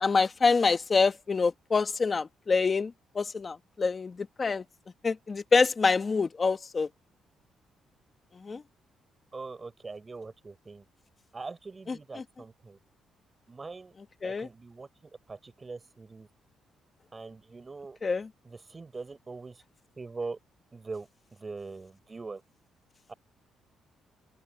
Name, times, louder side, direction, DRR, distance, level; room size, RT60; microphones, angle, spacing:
voice 1, 0.0-2.9 3.1-4.1 4.4-4.6 5.0-6.9 8.5-8.6 14.2-14.5 18.0-18.2, left 4 dB, 35° left, 1.4 m, -26 dB
voice 2, 9.3-10.9 11.3-12.8 13.5-13.9 14.2-16.3 17.1-18.0 18.4-19.6 20.0-20.4 20.7-22.4 23.1-23.2, right 3 dB, 30° right, 5.3 m, -42 dB
cardioid pair, 90°, 0 cm